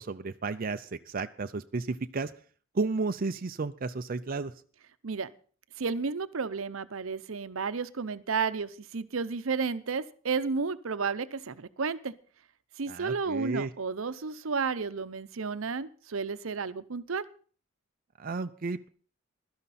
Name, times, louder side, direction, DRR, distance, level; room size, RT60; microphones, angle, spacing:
voice 1, 0.0-2.3 2.7-4.5 12.9-13.7 18.2-18.9, right 3 dB, 45° right, 8 dB, 0.5 m, -33 dB
voice 2, 5.8-12.1 12.8-17.2, right 5 dB, 80° right, 13 dB, 0.7 m, -32 dB
16.5 x 12.5 x 4.2 m, 0.43 s
head